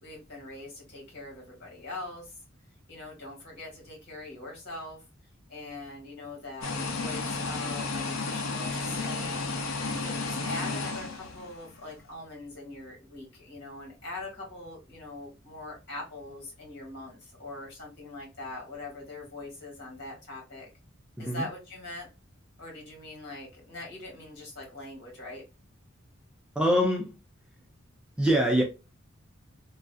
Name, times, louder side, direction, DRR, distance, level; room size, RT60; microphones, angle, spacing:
voice 1, 0.0-2.3 2.9-5.0 5.5-9.4 9.9-20.7 21.2-22.1 22.6-25.4, left 2 dB, 55° left, 1.7 m, -42 dB
sound 1, 6.6-11.8, left 3 dB, 70° left, 0.6 m, -32 dB
voice 2, 26.6-27.1 28.2-28.6, equal, 5° right, 0.4 m, -24 dB
3.1 x 2.4 x 2.5 m
head